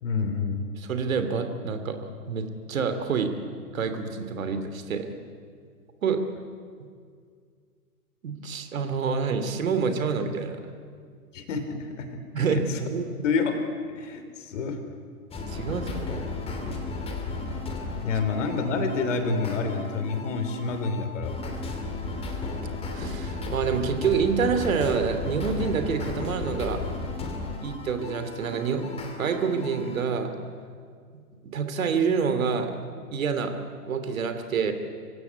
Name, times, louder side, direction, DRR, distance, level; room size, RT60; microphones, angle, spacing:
voice 1, 0.0-0.7 11.3-12.8 13.2-13.6 13.9-14.8 18.0-21.3, left 4 dB, 50° left, 8 dB, 3.3 m, -28 dB
voice 2, 0.8-2.0 2.3-3.3 3.7-5.1 6.0-6.2 8.2-10.6 12.3-13.0 15.5-16.2 22.9-26.8 27.6-28.9 29.2-30.3 31.4-32.7 33.1-33.5 33.9-34.7, right 5 dB, 60° right, 8 dB, 2.8 m, -27 dB
sound 1, 15.3-30.0, left 3 dB, 10° left, 2.9 m, -34 dB
26.0 x 16.0 x 9.6 m, 2.1 s
figure-of-eight pair, 120°, 47 cm